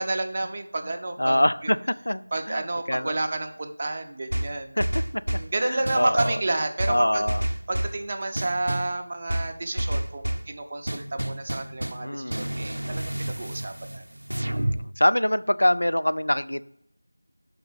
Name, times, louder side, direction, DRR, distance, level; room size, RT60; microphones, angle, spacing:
voice 1, 0.0-1.4 1.6-1.7 2.3-4.8 5.3-7.2 7.7-14.0, right 2 dB, 25° right, 5 dB, 0.5 m, -30 dB
voice 2, 1.2-3.1 4.8-4.9 5.6-6.4 6.9-7.4 12.0-12.5 14.4-16.6, left 1 dB, 70° left, 13 dB, 0.4 m, -24 dB
sound 1, 4.3-5.5 5.8-6.4 6.8-8.0 8.3-8.9 9.3-10.5 10.9-12.0 12.3-14.8, right 1 dB, 70° right, 0.6 m, -29 dB
5.7 x 5.1 x 5.8 m, 0.75 s
figure-of-eight pair, 170°, 0 cm